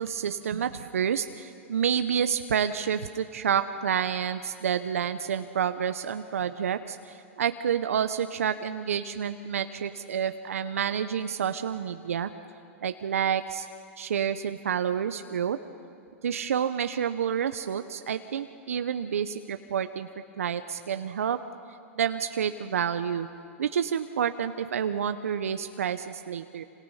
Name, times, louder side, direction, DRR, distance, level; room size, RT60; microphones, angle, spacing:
voice 1, 0.0-12.3 12.8-13.7 14.0-15.6 16.2-20.1 20.4-21.4 22.0-23.3 23.6-26.6, right 8 dB, 85° right, 9 dB, 0.8 m, -29 dB
27.0 x 26.5 x 5.7 m, 2.5 s
hypercardioid pair, 110°, 7 cm